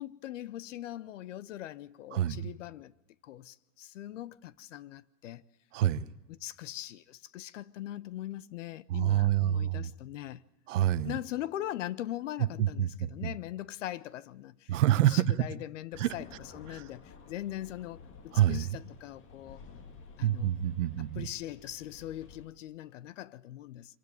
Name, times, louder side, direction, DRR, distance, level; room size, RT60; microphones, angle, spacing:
voice 1, 0.0-2.9 3.2-5.4 6.3-10.4 11.0-19.6 20.2-20.5 21.0-24.0, left 13 dB, 50° left, 0.8 m, -41 dB
voice 2, 2.1-2.5 5.7-6.0 8.9-9.9 10.7-11.1 12.6-13.3 14.7-15.2 16.0-16.1 16.7-16.8 18.3-18.7 20.2-21.3, right 12 dB, 50° right, 1.1 m, -27 dB
sound 1, 15.9-22.5, left 4 dB, 25° left, 2.1 m, -53 dB
25.5 x 16.0 x 9.5 m
hypercardioid pair, 135°, 47 cm